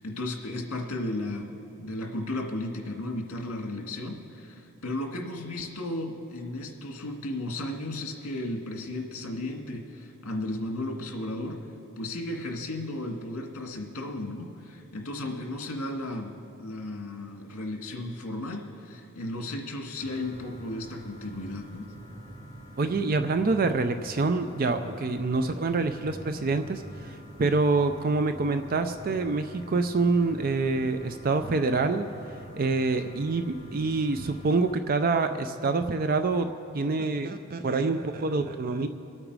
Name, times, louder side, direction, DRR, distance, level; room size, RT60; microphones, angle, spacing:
voice 1, 0.0-11.7 12.0-21.9 33.0-33.1, left 1 dB, 70° left, 2 dB, 1.9 m, -34 dB
sound 1, 20.0-34.7, right 1 dB, 15° left, 2.2 m, -46 dB
voice 2, 22.8-32.1 32.5-36.5 36.7-38.9, right 3 dB, 40° right, 8 dB, 0.4 m, -26 dB
24.5 x 8.8 x 4.8 m, 2.7 s
head